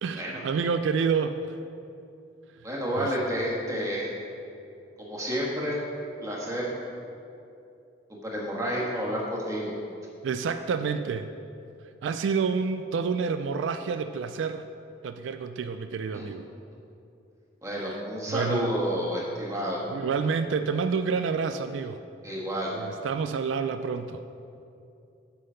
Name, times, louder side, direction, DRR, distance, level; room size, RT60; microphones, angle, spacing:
voice 1, 0.0-1.6 3.0-3.1 10.2-11.3 12.0-14.7 15.0-16.4 17.8-18.0 18.3-18.7 19.9-22.0 22.7-24.2, right 5 dB, 80° right, 9 dB, 0.3 m, -28 dB
voice 2, 2.6-4.1 5.0-5.8 6.2-6.8 8.1-9.8 16.1-16.2 17.6-19.8 22.2-22.7, equal, 15° right, -4 dB, 1.5 m, -30 dB
8.3 x 5.7 x 5.6 m, 2.7 s
head